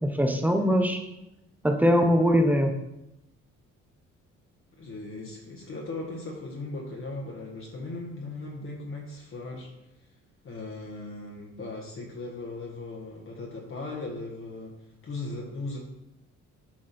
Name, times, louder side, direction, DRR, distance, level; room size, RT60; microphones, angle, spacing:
voice 1, 0.0-1.0 1.6-2.7, equal, 5° right, 4 dB, 1.0 m, -22 dB
voice 2, 4.8-9.7 10.4-14.8 15.0-15.8, left 2 dB, 45° left, -1 dB, 1.4 m, -38 dB
7.2 x 5.0 x 4.3 m, 0.89 s
cardioid pair, 90°, 30 cm